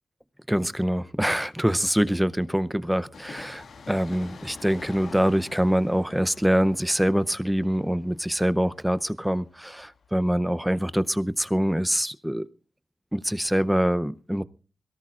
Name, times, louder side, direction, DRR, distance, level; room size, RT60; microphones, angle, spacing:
voice 1, 0.5-12.4 13.1-14.4, equal, 5° right, 0.6 m, -24 dB
Train, 3.1-10.6 10.8-10.9, left 4 dB, 65° left, 2.0 m, -46 dB
22.5 x 17.5 x 2.5 m
wide cardioid pair, 130°, 0 cm